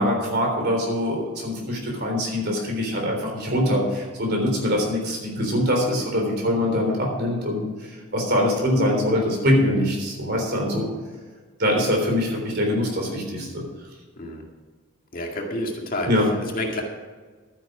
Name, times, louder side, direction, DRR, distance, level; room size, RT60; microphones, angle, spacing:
voice 1, 0.0-10.9 11.6-13.7 16.1-16.3, left 1 dB, 50° right, 1 dB, 3.6 m, -23 dB
voice 2, 15.1-16.1 16.4-16.8, left 1 dB, 40° left, 1 dB, 2.0 m, -29 dB
12.0 x 10.0 x 5.0 m, 1.4 s
head